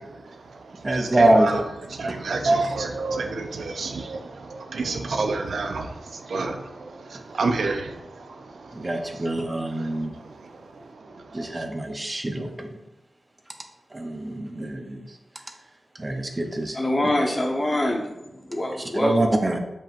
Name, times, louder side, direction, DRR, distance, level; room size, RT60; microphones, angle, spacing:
voice 1, 0.0-11.6, right 3 dB, 85° right, 5 dB, 0.6 m, -30 dB
voice 2, 0.8-1.5 8.7-10.1 11.3-12.7 13.9-15.0 16.0-16.8 19.0-19.6, right 1 dB, 25° right, 4 dB, 0.7 m, -24 dB
voice 3, 16.7-19.2, left 1 dB, 30° left, 0 dB, 1.1 m, -25 dB
7.0 x 5.3 x 2.5 m, 0.94 s
wide cardioid pair, 130°, 0 cm